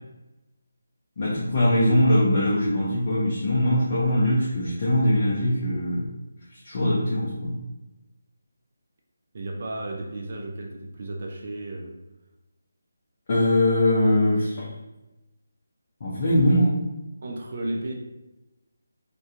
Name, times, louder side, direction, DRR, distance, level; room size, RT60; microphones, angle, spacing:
voice 1, 1.2-6.0 6.5-7.6 13.3-14.7 16.0-16.8, left 1 dB, 40° left, -6 dB, 0.5 m, -22 dB
voice 2, 9.3-11.9 17.2-17.9, right 1 dB, 45° right, 0 dB, 0.3 m, -33 dB
2.3 x 2.2 x 2.7 m, 1.0 s
figure-of-eight pair, 155°, 0 cm